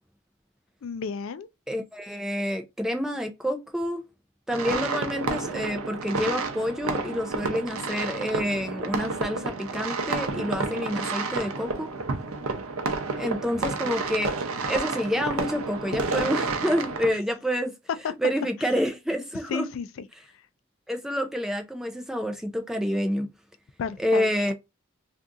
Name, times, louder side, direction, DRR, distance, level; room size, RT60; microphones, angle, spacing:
voice 1, 0.8-1.5 19.5-20.1 23.8-24.5, left 5 dB, 70° left, 0.3 m, -33 dB
voice 2, 1.7-4.0 4.5-11.9 13.2-14.4 14.7-17.7 18.2-19.7 20.9-23.3 24.0-24.5, equal, ahead, 0.4 m, -28 dB
sound 1, 4.5-17.1, right 3 dB, 80° right, 0.6 m, -30 dB
2.6 x 2.4 x 3.6 m
head